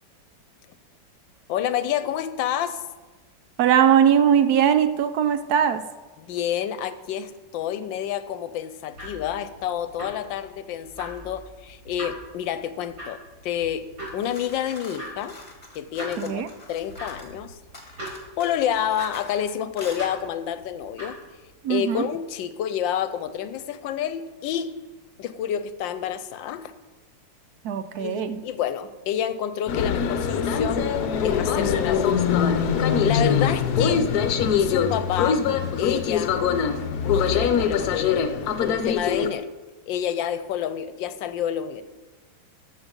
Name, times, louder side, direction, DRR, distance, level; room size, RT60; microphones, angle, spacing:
voice 1, 1.5-2.8 6.2-13.9 14.1-15.4 15.7-17.6 18.4-21.2 21.7-24.7 25.2-26.7 28.0-30.9 31.2-32.1 33.0-34.1 34.6-35.4 35.8-36.4 37.0-39.5 39.9-41.8, left 9 dB, 80° left, 13 dB, 1.3 m, -29 dB
voice 2, 3.6-5.9 16.2-16.5 21.6-22.1 27.6-28.4, right 8 dB, 70° right, 11 dB, 0.9 m, -20 dB
sound 1, 8.9-21.5, equal, 55° right, 4.8 m, -42 dB
sound 2, 14.1-17.4 17.7-19.5 19.8-20.0, left 2 dB, 20° left, 1.5 m, -45 dB
sound 3, 29.7-39.3, left 7 dB, 65° left, 1.1 m, -23 dB
13.5 x 7.1 x 5.2 m, 1.2 s
omnidirectional pair, 2.1 m